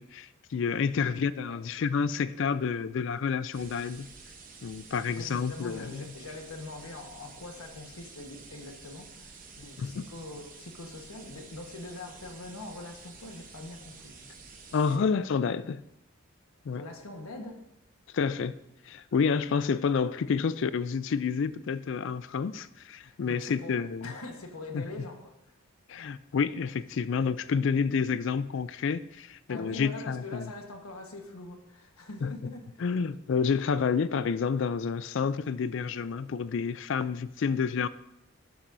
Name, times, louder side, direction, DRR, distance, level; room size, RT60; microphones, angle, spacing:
voice 1, 0.0-4.1 4.6-6.0 9.6-10.0 14.7-15.8 16.7-16.8 18.1-18.6 18.9-24.1 24.7-24.8 25.9-30.5 32.2-32.3 32.8-37.9, left 6 dB, 60° left, 0.3 m, -29 dB
sound 1, 3.5-15.0, right 4 dB, 40° right, 0.9 m, -50 dB
voice 2, 5.1-14.3 16.7-17.7 23.0-25.5 29.5-32.8, left 2 dB, 90° left, 1.3 m, -43 dB
12.0 x 7.2 x 2.6 m
head